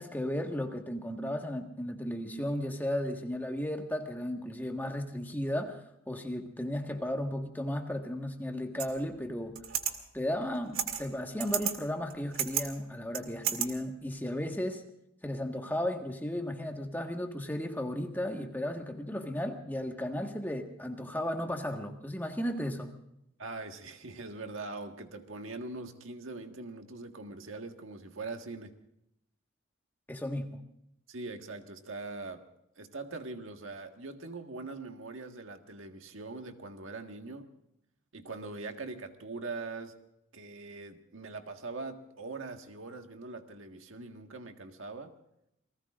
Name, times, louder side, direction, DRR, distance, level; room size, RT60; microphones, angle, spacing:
voice 1, 0.0-9.6 10.1-14.8 15.2-22.9 30.1-30.6, left 1 dB, 10° left, 3 dB, 1.6 m, -35 dB
sound 1, 8.8-8.9 9.5-9.9 10.7-11.1 11.4-11.7 12.1-12.6 13.1-13.7, right 10 dB, 90° right, 2.1 m, -31 dB
voice 2, 23.4-28.8 31.1-32.5 32.8-37.5 38.1-40.0 40.3-45.1, right 3 dB, 70° right, 5 dB, 1.7 m, -42 dB
29.5 x 19.5 x 2.5 m, 0.79 s
head